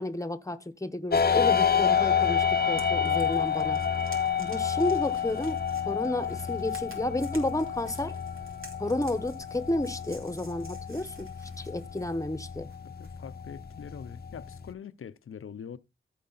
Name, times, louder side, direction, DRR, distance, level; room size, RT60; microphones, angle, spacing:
voice 1, 0.0-3.8 4.4-5.6 5.8-8.1 8.8-11.3 11.6-12.7, left 1 dB, 15° left, 1.0 m, -31 dB
sound 1, 1.1-14.7, left 7 dB, 45° left, 0.7 m, -29 dB
sound 2, 2.2-13.2, right 2 dB, 75° right, 2.6 m, -53 dB
voice 2, 13.0-15.8, left 7 dB, 85° left, 0.6 m, -43 dB
14.0 x 4.8 x 4.0 m
wide cardioid pair, 70°, 21 cm